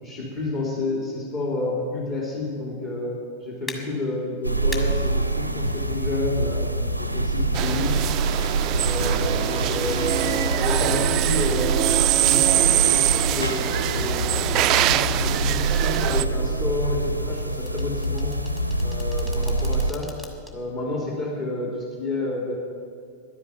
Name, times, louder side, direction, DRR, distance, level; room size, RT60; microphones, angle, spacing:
voice 1, 0.0-3.1 3.4-6.6 7.0-8.0 8.7-11.8 12.2-18.3 18.8-20.1 20.5-22.5, left 2 dB, 40° left, -3 dB, 3.0 m, -30 dB
sound 1, 3.7-3.8 4.7-4.8 6.8-6.9 9.7-10.0 10.5-10.8 12.2-12.5 12.9-13.2 15.1-15.4 15.8-16.1 17.7-20.5 21.0-21.1, left 1 dB, 10° left, 1.7 m, -41 dB
sound 2, 4.4-19.9, right 2 dB, 90° right, 0.6 m, -25 dB
sound 3, 7.5-16.2, right 14 dB, 40° right, 0.3 m, -24 dB
11.0 x 9.5 x 9.1 m, 2.2 s
figure-of-eight pair, 90°, 0 cm